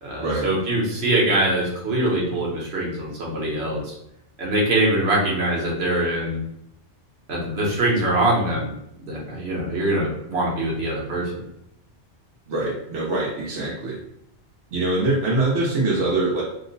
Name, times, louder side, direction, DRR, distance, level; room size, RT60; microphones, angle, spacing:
voice 1, 0.0-3.9 4.4-6.4 7.3-8.7 9.1-11.3, right 1 dB, 65° right, -4 dB, 1.2 m, -23 dB
voice 2, 12.5-14.0 14.7-16.4, right 2 dB, 80° right, -4 dB, 1.1 m, -23 dB
2.9 x 2.1 x 3.8 m, 0.78 s
omnidirectional pair, 1.2 m